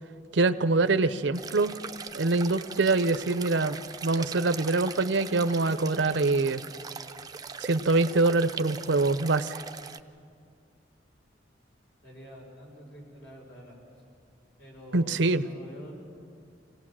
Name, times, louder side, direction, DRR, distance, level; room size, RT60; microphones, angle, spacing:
voice 1, 0.3-1.7 2.1-3.8 4.0-6.6 7.6-9.6 14.9-15.4, right 3 dB, 75° right, 12 dB, 0.7 m, -24 dB
sound 1, 1.3-10.0, right 5 dB, 20° right, 0.5 m, -41 dB
voice 2, 12.0-13.7 14.6-15.9, right 1 dB, 65° left, -1 dB, 6.0 m, -47 dB
26.0 x 17.5 x 7.5 m, 2.3 s
head